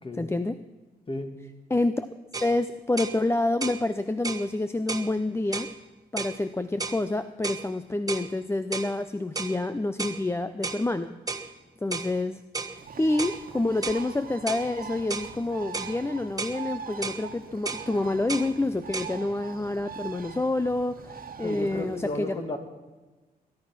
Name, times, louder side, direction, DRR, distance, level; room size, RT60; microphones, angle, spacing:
voice 1, 0.2-0.6 1.7-2.1 2.4-5.7 6.1-11.2 11.8-12.4 12.7-22.3, left 2 dB, 15° left, 11 dB, 0.6 m, -28 dB
sound 1, 2.3-2.5 3.0-3.2 3.6-3.8 4.2-4.5 4.9-5.1 5.5-5.7 6.2-6.4 6.8-7.0 7.4-7.7 8.1-8.3 8.7-8.9 9.4-9.6 10.0-10.2 10.6-10.8 11.3-11.5 11.9-12.1 12.5-12.8 13.2-13.4 13.8-14.0 14.5-14.7 15.1-15.3 15.7-16.0 16.4-16.6 17.0-17.2 17.7-17.9 18.3-18.5 18.9-19.1, right 4 dB, 20° right, 1.3 m, -33 dB
Bird, 12.8-22.1, right 6 dB, 60° right, 1.5 m, -42 dB
voice 2, 21.4-22.6, left 2 dB, 30° left, 5 dB, 2.3 m, -33 dB
21.0 x 11.0 x 6.0 m, 1.2 s
cardioid pair, 90°, 17 cm